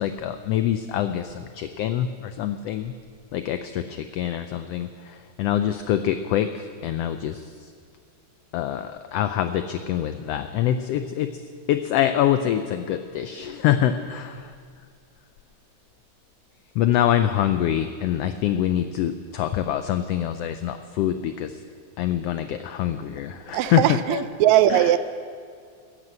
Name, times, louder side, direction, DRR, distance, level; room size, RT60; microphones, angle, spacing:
voice 1, 0.0-2.9 3.3-7.5 8.5-11.3 11.7-14.5 16.8-21.6 22.0-24.2 24.7-24.9, left 11 dB, 90° left, 9 dB, 1.4 m, -25 dB
voice 2, 23.5-25.0, right 12 dB, 80° right, 13 dB, 1.8 m, -19 dB
14.0 x 11.0 x 7.6 m, 2.1 s
omnidirectional pair, 3.4 m